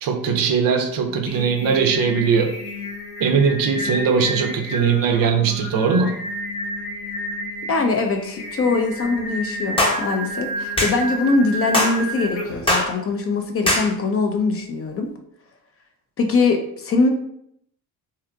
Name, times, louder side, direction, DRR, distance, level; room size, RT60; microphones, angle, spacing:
voice 1, 0.0-2.5 3.2-6.2, right 6 dB, 50° right, 4 dB, 0.5 m, -20 dB
Singing, 1.0-12.8, equal, 60° left, 0.7 m, -31 dB
voice 2, 7.7-15.1 16.2-17.1, left 3 dB, 35° left, 4 dB, 0.4 m, -22 dB
sound 1, 9.8-10.0 10.8-11.0 11.7-12.0 12.7-12.9 13.7-13.9, left 1 dB, 10° left, 0.8 m, -19 dB
2.8 x 2.3 x 2.3 m, 0.72 s
hypercardioid pair, 65°, 44 cm